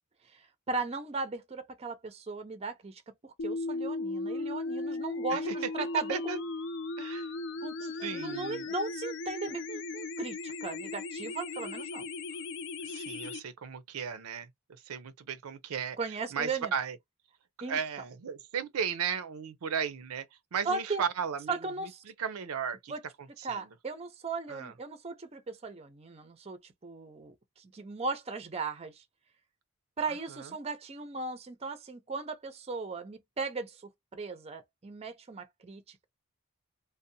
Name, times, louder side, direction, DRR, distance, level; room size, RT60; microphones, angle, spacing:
voice 1, 0.3-6.4 7.6-12.0 16.0-16.7 17.6-17.8 20.7-21.0 21.5-22.0 22.9-23.0 23.4-29.0 30.0-36.0, right 4 dB, 30° right, 0.4 m, -37 dB
sound 1, 3.4-13.4, left 2 dB, 55° left, 0.4 m, -37 dB
voice 2, 5.3-6.4 7.0-7.3 8.0-8.7 12.9-17.0 17.7-20.3 20.5-21.6 22.0-22.9 23.4-23.6 24.5-24.7 30.1-30.6, right 7 dB, 90° right, 0.5 m, -35 dB
2.6 x 2.0 x 2.6 m
head